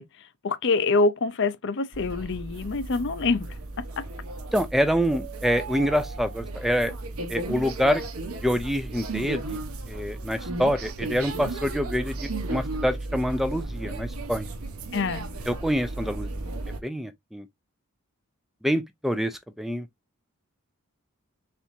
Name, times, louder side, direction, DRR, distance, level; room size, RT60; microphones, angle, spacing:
voice 1, 0.0-4.1 14.9-15.3, left 3 dB, 55° left, 0.6 m, -26 dB
sound 1, 1.9-16.8, right 2 dB, 80° right, 1.1 m, -35 dB
voice 2, 4.5-6.9 7.3-8.0 8.4-9.6 9.9-14.5 15.5-16.3 16.8-17.5 18.6-19.9, equal, ahead, 0.4 m, -26 dB
4.4 x 3.5 x 2.6 m
head